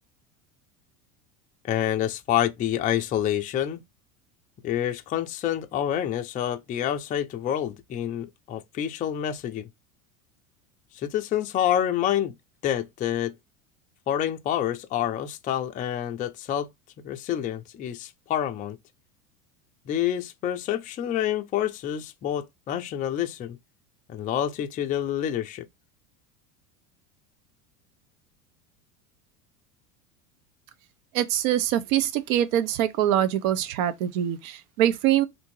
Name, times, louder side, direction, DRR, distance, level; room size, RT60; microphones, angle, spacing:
voice 1, 1.6-3.8 4.6-9.7 10.9-12.3 12.6-13.3 14.1-16.7 17.0-18.8 19.9-23.6 24.1-25.7, left 11 dB, 20° left, 0.3 m, -27 dB
voice 2, 31.1-35.3, right 11 dB, 65° right, 0.7 m, -24 dB
3.4 x 2.6 x 3.1 m
supercardioid pair, 105°, 43 cm